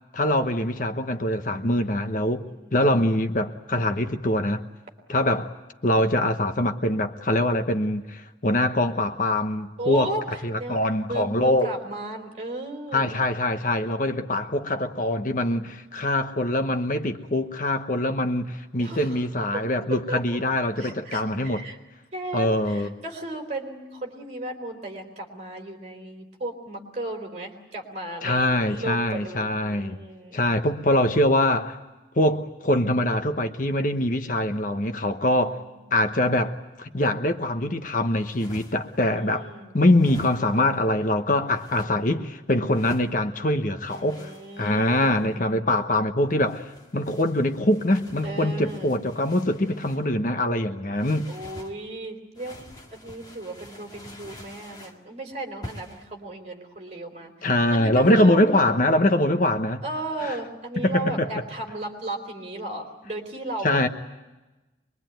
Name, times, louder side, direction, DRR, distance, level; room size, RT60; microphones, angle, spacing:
voice 1, 0.1-2.4 2.7-4.6 5.1-5.5 5.8-10.1 10.4-11.7 12.9-21.6 22.3-22.9 28.2-30.0 30.3-31.8 32.2-35.6 35.9-39.4 39.7-44.3 44.6-46.6 46.9-51.3 57.4-59.8 60.2-60.4 60.8-61.3 63.6-63.9, left 1 dB, 45° left, 1.0 m, -23 dB
voice 2, 2.4-2.8 9.8-13.2 18.8-19.3 19.5-19.6 19.9-20.2 20.8-21.8 22.1-30.5 35.4-35.8 39.2-39.8 43.9-45.6 48.2-48.9 51.3-57.3 57.7-58.5 59.8-63.8, right 2 dB, 35° right, 3.8 m, -35 dB
sound 1, 38.1-39.0 39.9-40.8 41.5-41.9 42.7-43.1 43.9-45.3 46.3-50.1 51.0-51.7 52.3-55.0 55.6-56.1, left 1 dB, 20° left, 1.8 m, -46 dB
24.0 x 22.5 x 9.2 m
head